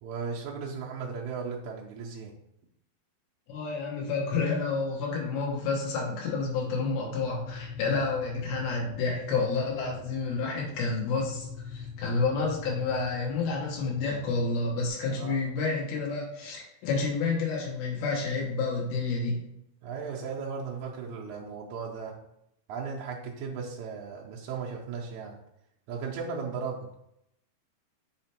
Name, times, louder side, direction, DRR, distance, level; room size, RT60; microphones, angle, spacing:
voice 1, 0.0-2.4 15.1-15.4 19.8-22.2 22.7-25.4 25.9-26.9, right 5 dB, 90° right, -2 dB, 1.7 m, -36 dB
voice 2, 3.5-19.4, left 4 dB, 90° left, -3 dB, 3.3 m, -29 dB
sound 1, 6.9-14.9, left 4 dB, 65° left, 1.8 m, -43 dB
6.6 x 3.4 x 4.3 m, 0.81 s
omnidirectional pair, 4.4 m